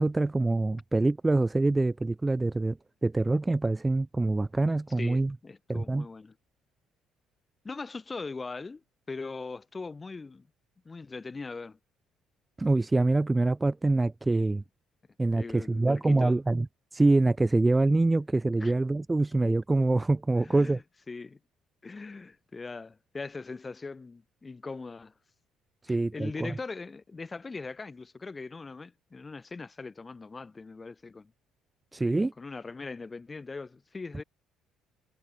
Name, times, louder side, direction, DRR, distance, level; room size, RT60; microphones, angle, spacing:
voice 1, 0.0-2.8 3.0-5.3 5.7-6.1 12.6-14.6 15.2-16.7 16.9-20.8 25.9-26.5 31.9-32.3, right 2 dB, 20° right, 1.3 m, -25 dB
voice 2, 5.0-6.3 7.6-10.5 10.8-11.8 15.3-16.4 18.6-18.8 20.4-21.4 21.8-25.1 25.9-31.3 32.0-34.2, left 4 dB, 30° left, 7.9 m, -41 dB
supercardioid pair, 60°, 0 cm